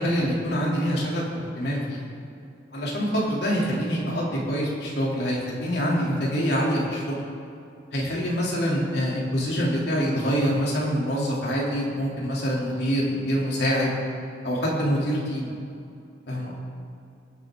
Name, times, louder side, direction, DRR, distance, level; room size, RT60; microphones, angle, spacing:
voice 1, 0.0-2.0 2.7-7.1 7.9-13.9 14.4-15.5 16.3-16.5, equal, 65° left, -4 dB, 3.1 m, -25 dB
22.0 x 7.9 x 3.8 m, 2.6 s
head